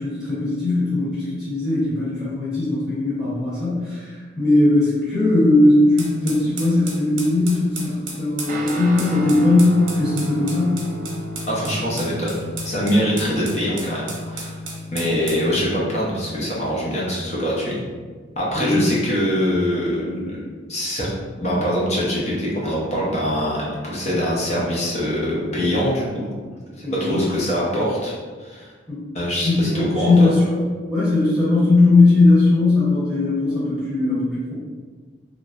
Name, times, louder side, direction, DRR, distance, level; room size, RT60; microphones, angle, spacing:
voice 1, 0.0-10.7 18.5-18.9 26.8-27.2 28.9-29.0 29.4-30.6 30.9-34.5, left 2 dB, 5° right, -12 dB, 0.9 m, -18 dB
sound 1, 6.0-15.5, right 3 dB, 85° right, 0.7 m, -35 dB
Guitar, 8.5-17.3, equal, 40° right, 0.3 m, -33 dB
voice 2, 11.5-12.4 12.6-14.6 14.9-17.8 18.4-20.4 20.7-21.1 21.4-26.3 26.7-28.7 29.1-30.3, equal, 35° left, -6 dB, 0.7 m, -23 dB
3.0 x 2.4 x 2.5 m, 1.5 s
head